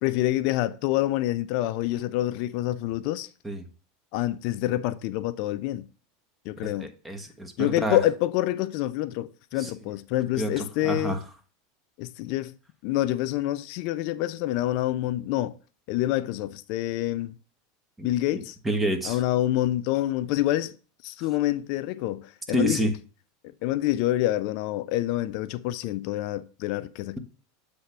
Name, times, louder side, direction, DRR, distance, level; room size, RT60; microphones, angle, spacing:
voice 1, 0.0-3.3 4.1-5.9 6.5-6.9 7.6-11.2 12.0-12.5 12.8-15.5 15.9-17.3 18.0-18.6 19.0-20.8 21.0-22.9 23.6-27.2, left 14 dB, 60° left, 0.4 m, -27 dB
voice 2, 6.6-8.0 9.5-9.7 10.4-11.2 18.0-18.1 18.6-19.2 22.5-22.9, right 1 dB, 15° right, 1.3 m, -28 dB
7.9 x 3.5 x 5.7 m
hypercardioid pair, 95°, 0 cm